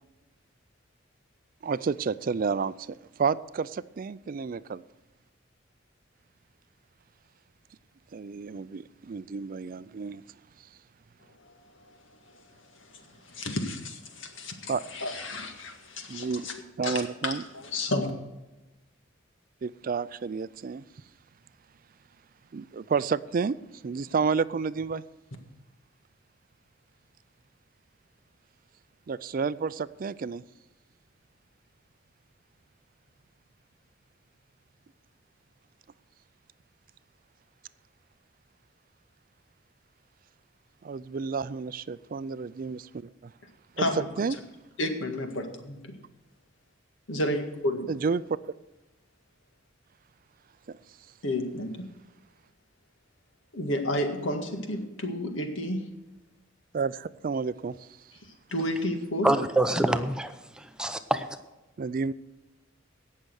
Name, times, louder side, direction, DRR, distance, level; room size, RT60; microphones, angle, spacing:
voice 1, 1.6-4.8 8.1-10.2 14.7-14.8 16.1-16.5 16.8-17.4 19.6-20.8 22.5-23.5 23.8-25.0 29.1-30.4 40.8-43.1 43.8-43.9 44.2-44.4 47.9-48.5 50.7-50.8 56.7-57.9 59.3-59.5 61.8-62.1, right 5 dB, 45° right, 0.4 m, -30 dB
voice 2, 13.3-18.1 43.8-44.1 44.8-45.3 45.6-45.8 47.1-47.9 51.2-51.9 53.5-55.8 58.5-59.3, left 1 dB, 80° left, 1.9 m, -31 dB
voice 3, 59.2-61.3, right 1 dB, 5° right, 0.6 m, -26 dB
17.5 x 6.6 x 6.4 m
head